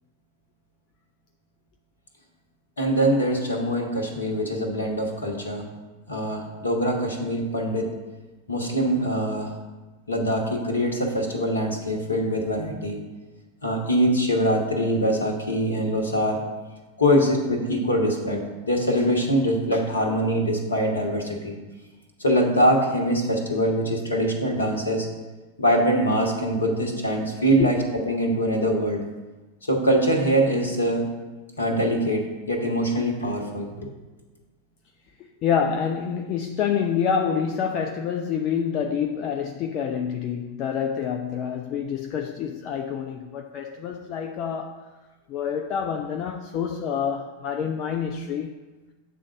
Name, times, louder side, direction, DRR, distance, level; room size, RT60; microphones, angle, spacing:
voice 1, 2.8-5.6 6.1-8.0 8.5-9.5 10.1-13.0 13.6-16.4 17.0-21.5 22.2-25.1 25.6-27.8 28.1-29.0 29.7-31.1 31.6-33.9, equal, 75° left, 2 dB, 1.2 m, -23 dB
voice 2, 35.4-44.8 45.3-48.6, left 7 dB, 35° left, 4 dB, 0.4 m, -27 dB
7.6 x 3.8 x 6.2 m, 1.2 s
figure-of-eight pair, 90°, 0 cm